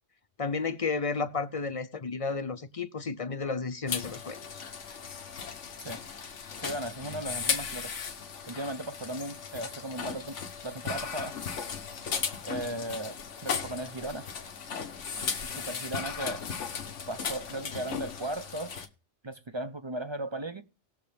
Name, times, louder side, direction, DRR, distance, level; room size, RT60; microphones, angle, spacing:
voice 1, 0.4-4.6, left 4 dB, 40° left, 0.5 m, -32 dB
sound 1, 3.9-18.9, left 6 dB, 75° left, 1.4 m, -36 dB
voice 2, 6.6-7.9 8.5-11.3 12.5-13.2 13.4-14.3 15.5-16.4 17.1-18.9 19.2-20.6, right 1 dB, 30° right, 0.5 m, -36 dB
19.0 x 6.8 x 3.4 m
omnidirectional pair, 1.3 m